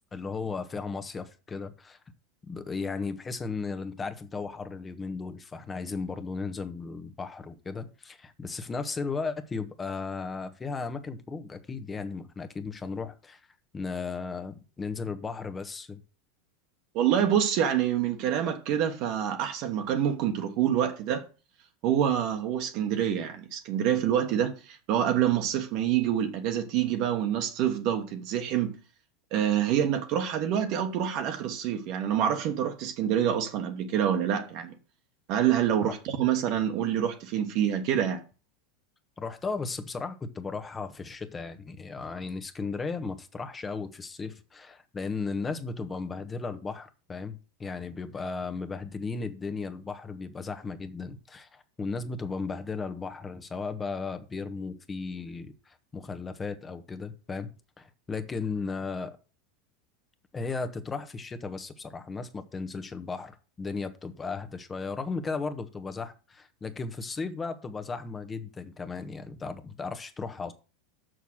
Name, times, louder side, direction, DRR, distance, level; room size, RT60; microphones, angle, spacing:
voice 1, 0.1-2.0 2.5-13.4 13.7-16.0 35.8-35.9 39.2-57.5 57.8-59.2 60.3-70.5, left 4 dB, 20° left, 1.3 m, -35 dB
voice 2, 16.9-21.3 21.8-28.8 29.3-34.7 35.3-38.2, right 9 dB, 50° right, 1.3 m, -26 dB
7.0 x 6.4 x 6.3 m
figure-of-eight pair, 85°, 0 cm